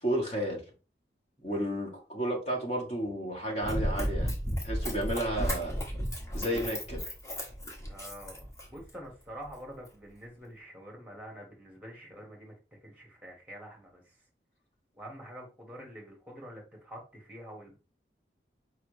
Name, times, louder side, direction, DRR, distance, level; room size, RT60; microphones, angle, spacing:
voice 1, 0.0-0.6 1.4-4.3 4.6-5.7 6.3-7.0, right 1 dB, 40° left, 0 dB, 1.4 m, -32 dB
Run, 3.6-8.9 9.5-9.6, equal, 15° left, 1.1 m, -33 dB
voice 2, 7.9-12.5 12.8-14.2 14.9-17.8, equal, 10° right, 0 dB, 1.4 m, -47 dB
4.7 x 3.3 x 3.2 m, 0.32 s
head